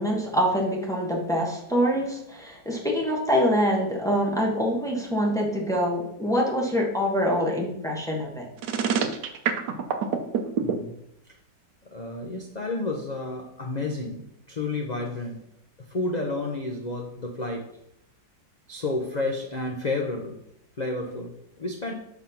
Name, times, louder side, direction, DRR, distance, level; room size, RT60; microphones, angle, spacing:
voice 1, 0.0-8.5, equal, ahead, -2 dB, 1.1 m, -25 dB
sound 1, 8.6-10.7, right 7 dB, 75° right, 1.3 m, -25 dB
voice 2, 10.6-11.0 11.9-15.4 15.9-17.7 18.7-20.4 20.8-21.9, left 2 dB, 65° left, 1 dB, 0.4 m, -31 dB
6.1 x 3.5 x 5.6 m, 0.77 s
omnidirectional pair, 1.8 m